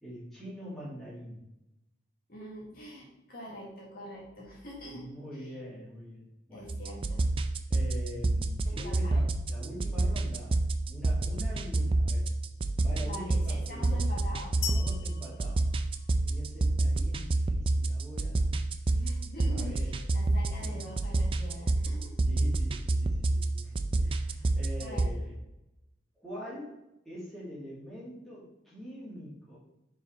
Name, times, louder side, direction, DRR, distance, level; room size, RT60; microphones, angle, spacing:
voice 1, 0.0-1.4 4.9-6.7 7.7-10.6 10.9-12.3 12.8-14.0 14.7-15.7 16.2-18.5 18.8-19.1 19.5-20.0 20.6-20.8 22.3-25.3 26.2-26.8 27.0-29.6, equal, ahead, -8 dB, 2.2 m, -44 dB
voice 2, 2.3-5.1 5.3-5.5 6.5-7.2 8.6-9.2 13.0-14.8 18.9-22.1 24.8-25.1, equal, 50° left, -3 dB, 1.5 m, -44 dB
sound 1, 6.7-25.1, right 2 dB, 30° right, 0.3 m, -29 dB
sound 2, 14.6-16.6, left 9 dB, 85° left, 0.7 m, -40 dB
5.1 x 4.9 x 4.2 m, 0.91 s
head